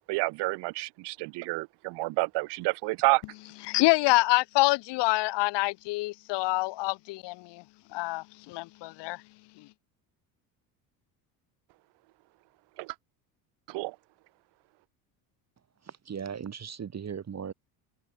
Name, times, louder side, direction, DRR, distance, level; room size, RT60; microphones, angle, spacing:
voice 1, 0.1-3.2 12.8-12.9 13.7-14.0, right 23 dB, 55° right, 0.6 m, -29 dB
voice 2, 3.7-7.6 7.9-9.2 9.6-9.7, left 22 dB, 55° left, 0.8 m, -26 dB
voice 3, 15.8-17.5, right 7 dB, 30° right, 2.3 m, -38 dB
supercardioid pair, 85°, 49 cm